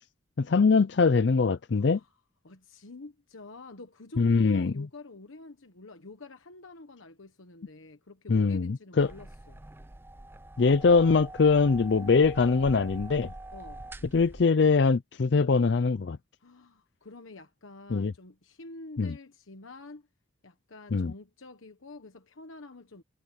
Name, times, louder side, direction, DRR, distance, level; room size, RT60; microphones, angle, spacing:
voice 1, 0.4-2.0 4.2-4.9 8.3-9.1 10.6-13.3 14.1-16.2 17.9-18.1 19.0-19.1 20.9-21.1, left 4 dB, 60° left, 0.5 m, -23 dB
voice 2, 1.7-2.1 2.4-9.7 13.5-13.9 16.4-20.1 20.4-23.0, left 2 dB, 85° left, 1.3 m, -48 dB
sound 1, 9.0-14.4, right 2 dB, 10° right, 0.5 m, -44 dB
head